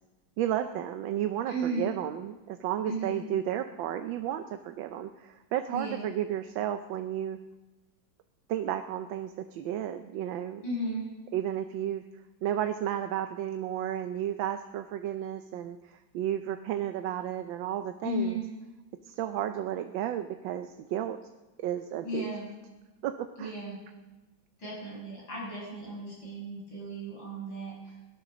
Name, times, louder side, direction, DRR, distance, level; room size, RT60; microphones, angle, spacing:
voice 1, 0.4-7.4 8.5-10.6 11.3-12.0 12.4-18.4 19.0-21.2 21.6-22.3 23.0-23.5, right 11 dB, 80° right, 8 dB, 1.4 m, -33 dB
voice 2, 1.5-1.9 2.8-3.2 5.7-6.0 10.6-11.1 18.0-18.5 22.0-22.4 23.4-23.8 24.6-27.9, right 1 dB, 75° left, -4 dB, 7.2 m, -35 dB
17.5 x 12.0 x 6.3 m, 1.1 s
omnidirectional pair, 2.1 m